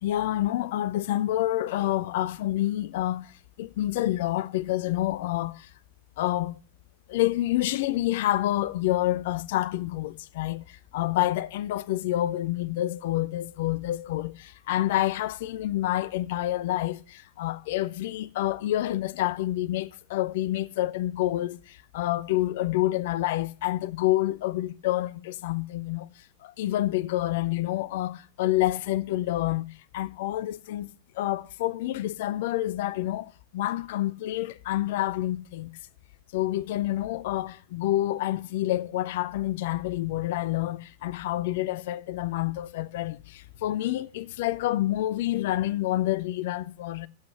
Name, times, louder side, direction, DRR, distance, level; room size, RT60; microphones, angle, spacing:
voice 1, 0.0-5.7 6.2-6.6 7.1-29.7 29.9-30.9 31.1-35.7 36.3-47.1, left 15 dB, 55° left, 0.7 m, -28 dB
13.5 x 8.4 x 10.0 m
figure-of-eight pair, 90°, 0 cm